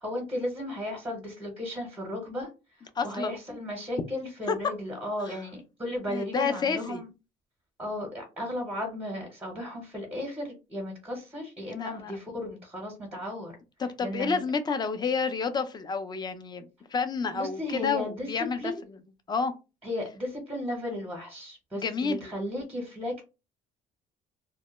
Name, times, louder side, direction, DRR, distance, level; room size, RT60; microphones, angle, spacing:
voice 1, 0.0-2.5 3.0-7.1 7.8-13.5 14.0-14.4 17.3-18.3 18.6-18.8 19.8-23.2, left 1 dB, 5° right, 0 dB, 0.8 m, -35 dB
voice 2, 3.0-3.3 4.5-4.6 5.3-5.4 6.1-7.0 11.7-12.1 13.8-19.0 19.3-19.5 21.8-22.3, left 5 dB, 25° left, 9 dB, 0.4 m, -30 dB
2.1 x 2.0 x 3.0 m, 0.29 s
cardioid pair, 110°, 17 cm